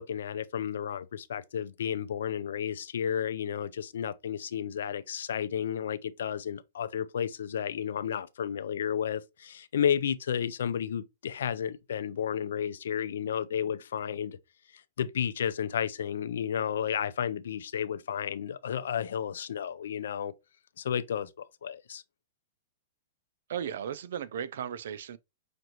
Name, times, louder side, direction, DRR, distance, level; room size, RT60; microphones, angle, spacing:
voice 1, 0.0-14.4 14.7-20.3 20.8-22.0, left 8 dB, 85° left, 0.5 m, -32 dB
voice 2, 23.5-25.2, right 9 dB, 70° right, 0.5 m, -35 dB
5.9 x 2.6 x 2.9 m
supercardioid pair, 165°, 0 cm